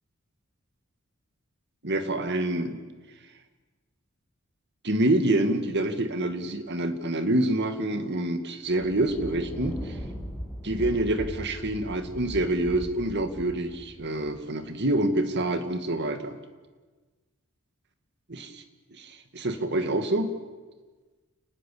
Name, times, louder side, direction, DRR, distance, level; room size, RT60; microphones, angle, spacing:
voice 1, 1.8-2.8 4.8-10.0 10.6-16.4 18.3-18.6 19.0-20.3, right 1 dB, 55° right, 8 dB, 2.2 m, -27 dB
Thunder, 8.6-15.3, equal, 5° left, 6.9 m, -39 dB
29.5 x 19.5 x 8.7 m, 1.3 s
head